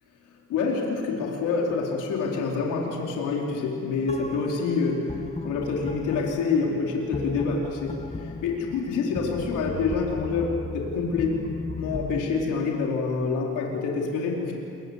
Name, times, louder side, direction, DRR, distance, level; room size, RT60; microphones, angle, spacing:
voice 1, 0.5-11.4 11.7-14.6, left 4 dB, 90° left, -1 dB, 4.4 m, -27 dB
sound 1, 4.1-12.2, left 3 dB, 20° left, 1.7 m, -36 dB
29.0 x 23.5 x 8.3 m, 2.7 s
cardioid pair, 90°, 30 cm